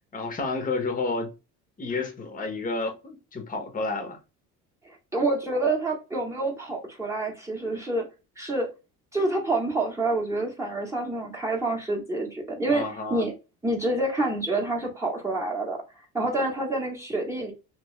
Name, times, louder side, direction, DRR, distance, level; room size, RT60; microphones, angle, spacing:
voice 1, 0.1-1.3 1.8-4.2 12.7-13.3, left 3 dB, 25° left, 1.0 m, -30 dB
voice 2, 4.8-8.1 8.4-8.7 9.1-13.3 13.6-15.8 16.1-17.5, right 2 dB, 10° right, 1.1 m, -27 dB
3.0 x 3.0 x 3.1 m
cardioid pair, 140°, 35 cm